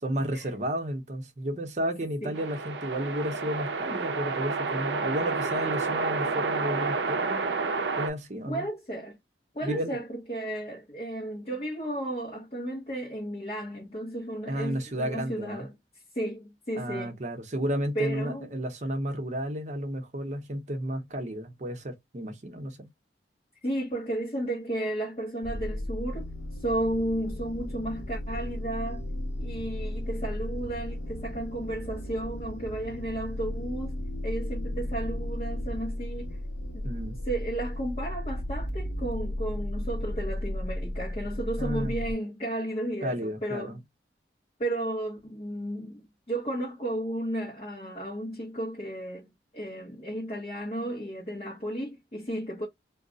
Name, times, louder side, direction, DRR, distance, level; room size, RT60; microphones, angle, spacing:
voice 1, 0.0-7.4 8.0-8.7 9.6-10.0 14.5-15.7 16.7-22.9 36.8-37.2 41.6-41.9 43.0-43.8, equal, 40° right, 0.7 m, -32 dB
sound 1, 2.3-8.1, right 4 dB, 75° right, 0.5 m, -30 dB
voice 2, 8.5-9.2 9.5-15.7 16.1-17.2 17.9-18.5 23.6-26.3 26.6-29.1 29.4-34.0 34.2-36.5 36.8-36.9 37.3-43.8 44.6-52.7, right 1 dB, 35° left, 0.8 m, -33 dB
sound 2, 25.4-42.1, left 1 dB, 75° left, 0.8 m, -34 dB
2.3 x 2.1 x 3.8 m
head